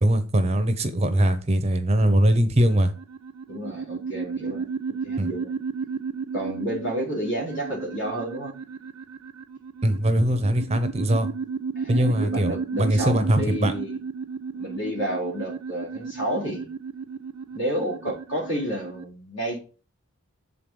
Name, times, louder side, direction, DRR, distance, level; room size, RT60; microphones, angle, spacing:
voice 1, 0.0-2.9 5.2-5.3 9.8-11.3 11.9-13.7, right 1 dB, 30° right, 0.7 m, -21 dB
sound 1, 2.7-19.0, right 5 dB, 85° right, 0.5 m, -34 dB
voice 2, 3.5-4.6 5.0-5.5 6.3-8.5 11.7-13.9 14.5-16.7 17.5-19.6, equal, 55° left, 3.0 m, -30 dB
7.5 x 4.0 x 5.3 m
head